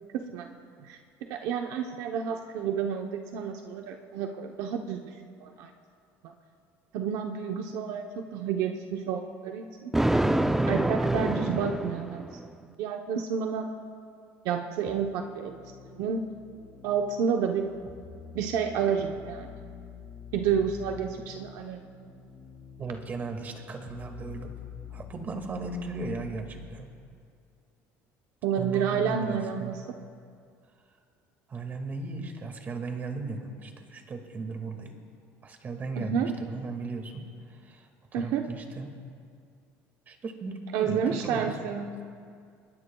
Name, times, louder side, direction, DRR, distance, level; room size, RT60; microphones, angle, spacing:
voice 1, 0.1-5.1 5.4-5.7 6.2-6.3 6.9-9.9 10.7-13.7 14.4-16.3 16.8-17.8 18.3-19.5 20.3-21.8 28.4-29.8 36.0-36.4 38.1-38.5 40.7-42.0, right 7 dB, 75° right, 4 dB, 0.8 m, -30 dB
Thunder, 9.9-12.5, right 1 dB, 5° right, 0.5 m, -26 dB
sound 1, 14.9-26.9, left 6 dB, 30° left, 1.9 m, -47 dB
voice 2, 22.8-24.5 24.9-26.9 28.5-29.8 31.5-34.9 35.4-38.9 40.1-41.6, right 3 dB, 30° right, 4 dB, 2.0 m, -36 dB
24.0 x 20.5 x 2.3 m, 2.3 s
cardioid pair, 125°, 6 cm